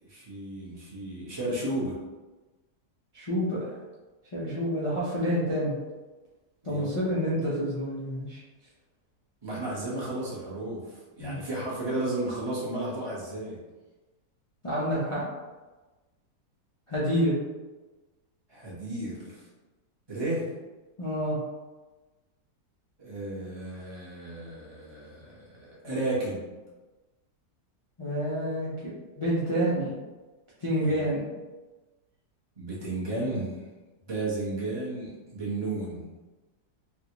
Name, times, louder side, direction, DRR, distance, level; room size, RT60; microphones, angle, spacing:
voice 1, 0.0-2.0 6.6-6.9 9.4-13.6 18.5-19.4 20.1-20.5 23.0-26.4 30.9-31.1 32.6-33.6 34.1-36.1, right 2 dB, 20° right, -7 dB, 0.8 m, -33 dB
voice 2, 3.1-3.8 4.3-5.7 6.6-8.4 11.2-11.4 14.6-15.3 16.9-17.4 21.0-21.4 28.0-28.7 29.2-30.0 30.6-31.2, equal, 50° left, -9 dB, 0.3 m, -28 dB
3.4 x 2.5 x 2.9 m, 1.2 s
omnidirectional pair, 1.7 m